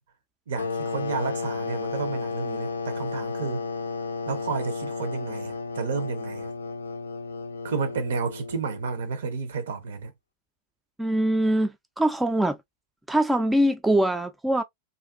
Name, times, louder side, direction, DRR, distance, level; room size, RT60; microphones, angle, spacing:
voice 1, 0.5-3.7 4.3-6.5 7.6-10.1, right 5 dB, 65° right, 0.7 m, -31 dB
sound 1, 0.6-9.0, left 4 dB, 75° left, 0.4 m, -33 dB
voice 2, 11.0-12.6 13.1-14.6, right 1 dB, 5° right, 0.3 m, -23 dB
2.5 x 2.3 x 2.2 m
figure-of-eight pair, 90°, 0 cm